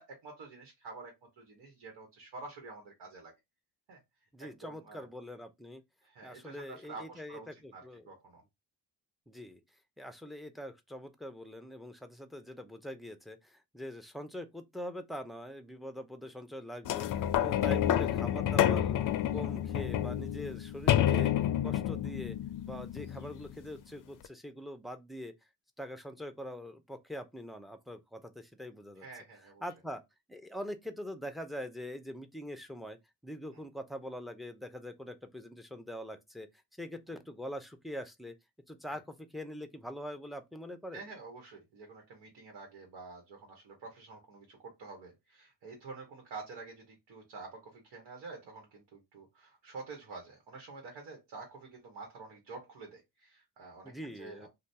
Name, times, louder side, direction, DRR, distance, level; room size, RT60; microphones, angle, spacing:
voice 1, 0.0-3.3 3.9-4.0 4.4-5.1 6.0-8.4 29.0-29.6 33.5-33.6 38.9-39.0 40.9-54.5, right 3 dB, 85° right, 1.2 m, -48 dB
voice 2, 4.3-5.8 6.2-8.1 9.3-9.6 10.0-19.0 19.3-21.3 21.6-22.4 22.6-25.3 25.8-29.1 29.6-30.0 30.3-33.0 33.2-36.5 36.8-38.3 38.7-41.0 53.8-54.5, equal, ahead, 0.6 m, -43 dB
sound 1, 16.8-23.6 24.2-24.3, left 11 dB, 55° left, 0.4 m, -29 dB
2.6 x 2.4 x 3.4 m
cardioid pair, 70°, 40 cm